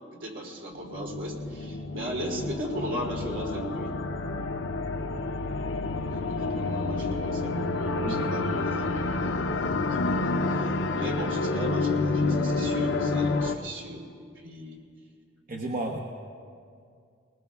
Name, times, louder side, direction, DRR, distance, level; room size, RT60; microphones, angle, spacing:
voice 1, 0.1-3.9 6.1-9.2 9.8-14.0 14.3-14.8, equal, 70° right, -2 dB, 3.1 m, -37 dB
sound 1, 0.8-13.6, left 3 dB, 70° left, 0.6 m, -29 dB
voice 2, 8.0-8.5 15.5-16.0, right 1 dB, 45° right, -1 dB, 1.0 m, -33 dB
22.0 x 20.0 x 2.4 m, 2.3 s
head